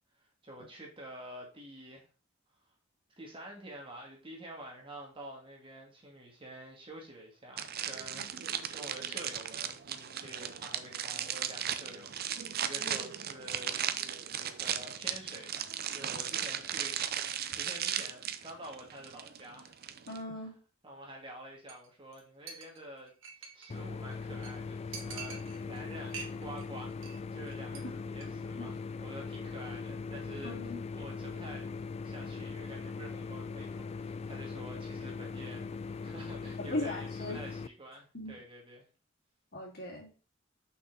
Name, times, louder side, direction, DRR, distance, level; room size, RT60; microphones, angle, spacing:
voice 1, 0.4-2.0 3.2-19.7 20.8-23.1 23.5-26.9 27.3-31.7 32.0-38.9, right 1 dB, 25° right, 2.4 m, -48 dB
sound 1, 7.6-20.2, right 9 dB, 50° right, 0.7 m, -36 dB
voice 2, 20.1-20.5 28.5-28.7 30.4-30.8 36.7-37.4 38.1-38.3 39.5-40.1, left 2 dB, 55° left, 3.0 m, -38 dB
Chink clink, 21.7-21.9 22.1-22.2 22.5-23.8 24.1-24.2 24.4-24.5 24.9-25.8 26.1-26.6 26.9-27.2 27.5-27.8 28.1-28.3, right 5 dB, 85° right, 1.9 m, -45 dB
sound 2, 23.7-37.7, left 4 dB, 30° left, 0.4 m, -40 dB
6.0 x 5.8 x 4.2 m
head